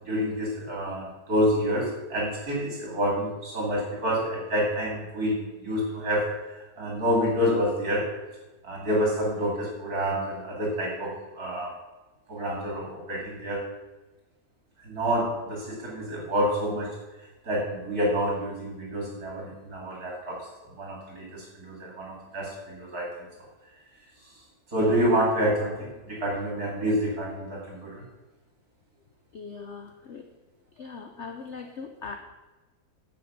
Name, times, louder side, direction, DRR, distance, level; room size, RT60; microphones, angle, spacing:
voice 1, 0.1-6.2 6.8-8.0 8.6-11.7 12.3-13.6 14.8-16.9 17.4-23.1 24.7-28.0, equal, 55° right, -2 dB, 3.2 m, -28 dB
voice 2, 29.3-30.3 30.7-32.2, left 5 dB, 55° left, 5 dB, 0.8 m, -40 dB
10.0 x 7.7 x 5.7 m, 1.2 s
omnidirectional pair, 2.0 m